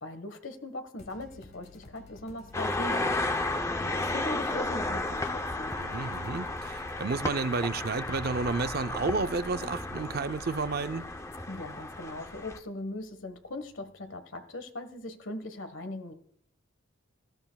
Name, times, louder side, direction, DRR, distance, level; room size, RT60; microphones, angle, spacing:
voice 1, 0.0-3.2 3.8-5.8 11.5-16.1, left 2 dB, 70° left, 1.4 m, -40 dB
sound 1, 1.0-14.4, left 1 dB, 50° left, 1.5 m, -50 dB
sound 2, 2.5-12.6, left 2 dB, 15° left, 0.6 m, -33 dB
voice 2, 5.8-11.0, right 4 dB, 50° right, 0.5 m, -31 dB
18.5 x 13.5 x 2.3 m
head